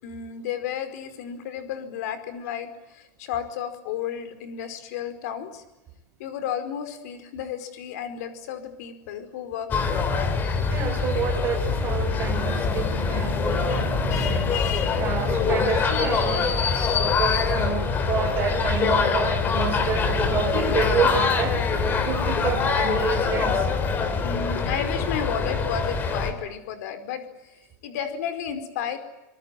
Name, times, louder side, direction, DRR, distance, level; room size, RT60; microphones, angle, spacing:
voice 1, 0.0-5.6 6.2-10.0 11.2-11.3 13.4-15.0 18.8-18.9 19.7-20.9 24.2-27.2 27.8-29.0, left 8 dB, 60° left, 9 dB, 4.9 m, -33 dB
sound 1, 9.7-26.3, left 5 dB, 20° left, 3.0 m, -24 dB
voice 2, 10.6-14.5 15.0-21.6 22.0-23.7, right 7 dB, 25° right, 5 dB, 5.1 m, -29 dB
26.5 x 22.5 x 9.2 m, 1.0 s
supercardioid pair, 170°, 10 cm